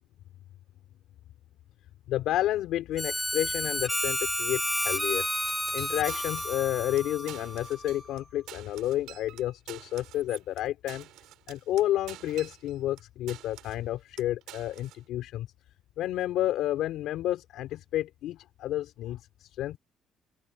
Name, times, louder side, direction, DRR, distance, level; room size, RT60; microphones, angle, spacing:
voice 1, 2.1-5.3 5.7-11.1 11.5-15.5 16.0-19.8, left 13 dB, 75° left, 3.8 m, -30 dB
Harmonica, 3.0-8.1, equal, ahead, 0.8 m, -31 dB
sound 1, 5.5-6.7 7.0-7.1 7.3-8.2 8.5-13.0 13.3-13.9 14.2-15.0, right 15 dB, 80° right, 7.3 m, -48 dB
open air
cardioid pair, 145°, 0 cm